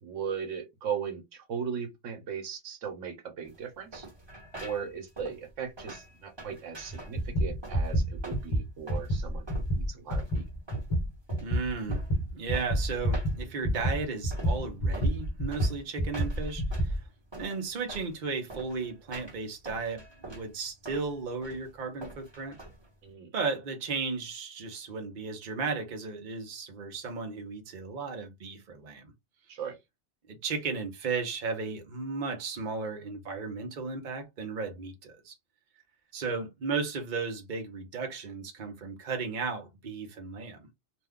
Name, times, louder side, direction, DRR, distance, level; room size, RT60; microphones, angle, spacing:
voice 1, 0.0-4.1 4.6-9.5 9.7-10.4 23.0-23.3 29.5-29.8, right 7 dB, 80° right, 1.1 m, -37 dB
sound 1, 3.4-23.1, right 2 dB, 20° right, 1.2 m, -46 dB
sound 2, 6.9-17.0, right 1 dB, 25° left, 1.0 m, -29 dB
voice 2, 11.4-12.0 12.3-17.0 17.4-22.6 23.3-29.1 30.4-35.3 36.1-40.7, right 4 dB, 45° right, 0.8 m, -35 dB
2.6 x 2.3 x 3.5 m
omnidirectional pair, 1.3 m